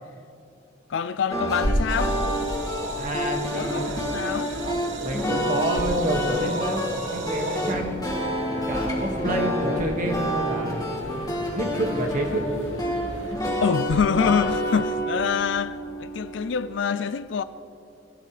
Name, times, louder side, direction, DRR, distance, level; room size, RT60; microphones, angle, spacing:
voice 1, 0.9-2.2 3.6-4.5 13.6-17.4, left 6 dB, 70° left, 0.4 m, -25 dB
sound 1, 1.3-16.8, equal, 20° left, 2.8 m, -28 dB
sound 2, 1.9-7.7, right 3 dB, 85° right, 1.2 m, -35 dB
voice 2, 3.0-4.1 5.0-8.0 8.5-10.8 11.6-12.4, right 1 dB, 45° right, 2.0 m, -28 dB
sound 3, 8.0-13.4, left 1 dB, 85° left, 2.6 m, -38 dB
23.0 x 14.5 x 3.3 m
head